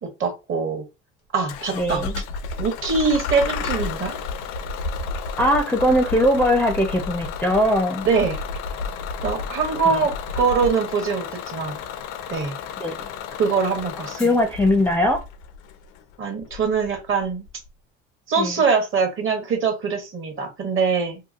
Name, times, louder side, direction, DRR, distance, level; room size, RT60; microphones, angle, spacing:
voice 1, 0.0-0.8 1.3-2.1 2.6-4.2 8.0-8.4 9.2-11.8 12.3-12.5 13.4-14.4 16.2-17.5 18.3-21.2, right 5 dB, 45° right, 1.0 m, -23 dB
Bus / Engine starting, 1.5-17.7, left 9 dB, 70° left, 0.5 m, -35 dB
sound 1, 1.7-10.7, left 2 dB, 90° left, 0.9 m, -32 dB
voice 2, 1.7-2.1 5.4-8.1 9.9-10.1 12.8-12.9 14.2-15.2 18.4-18.6, left 1 dB, 5° left, 0.5 m, -20 dB
2.8 x 2.3 x 2.4 m
hypercardioid pair, 70°, 30 cm